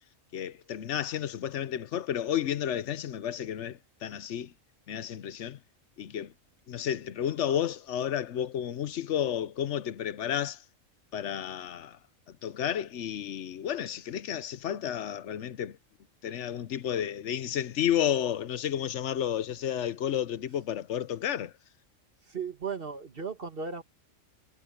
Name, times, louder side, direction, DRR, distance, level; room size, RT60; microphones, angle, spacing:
voice 1, 0.3-4.5 4.9-5.6 6.0-6.3 6.7-10.6 11.1-12.0 12.4-15.8 16.2-21.5, left 10 dB, 60° left, 1.1 m, -31 dB
voice 2, 22.3-23.8, right 5 dB, 45° right, 1.8 m, -36 dB
omnidirectional pair, 1.4 m